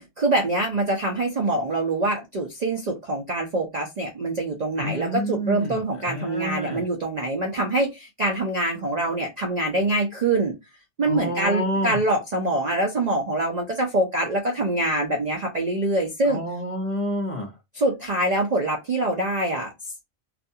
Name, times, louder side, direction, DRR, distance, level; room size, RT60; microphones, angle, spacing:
voice 1, 0.0-10.5 11.0-16.4 17.7-19.9, right 2 dB, 50° right, 2 dB, 0.5 m, -25 dB
voice 2, 4.8-6.8 11.0-12.0 16.2-17.5, equal, 30° left, 0 dB, 0.8 m, -29 dB
2.5 x 2.3 x 2.6 m, 0.21 s
omnidirectional pair, 1.2 m